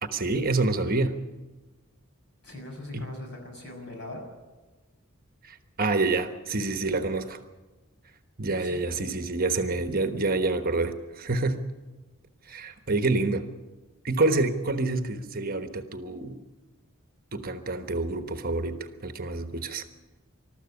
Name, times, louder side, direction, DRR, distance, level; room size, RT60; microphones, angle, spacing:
voice 1, 0.0-1.2 2.9-3.1 5.4-7.4 8.4-11.6 12.4-13.5 14.0-16.4 17.3-19.8, right 3 dB, 40° right, 8 dB, 1.2 m, -27 dB
voice 2, 2.4-4.3 8.6-9.2, left 1 dB, 55° left, 2 dB, 6.3 m, -41 dB
21.0 x 13.5 x 9.8 m, 1.2 s
head